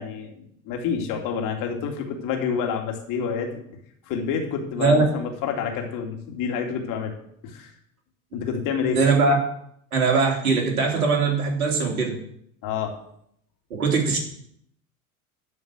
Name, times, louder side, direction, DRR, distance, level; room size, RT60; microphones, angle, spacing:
voice 1, 0.0-3.5 4.1-7.1 7.4-7.7 8.3-9.0 12.6-12.9, left 6 dB, 45° left, 3 dB, 2.5 m, -28 dB
voice 2, 8.9-9.4 9.9-12.2 13.7-14.2, right 4 dB, 70° right, 1 dB, 3.3 m, -21 dB
12.0 x 5.1 x 7.6 m, 0.70 s
figure-of-eight pair, 80°, 44 cm